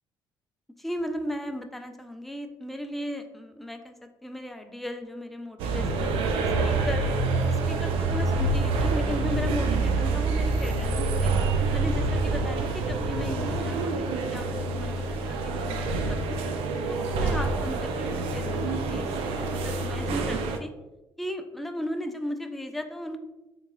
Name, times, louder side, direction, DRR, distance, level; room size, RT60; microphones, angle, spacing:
voice 1, 0.8-6.3 6.6-7.0 7.5-11.3 11.7-16.4 16.9-19.1 19.4-20.7 21.2-23.2, left 1 dB, ahead, 6 dB, 0.3 m, -36 dB
sound 1, 5.6-20.6, right 3 dB, 85° right, 0.4 m, -27 dB
3.6 x 3.0 x 2.3 m, 1.0 s
cardioid pair, 90°, 9 cm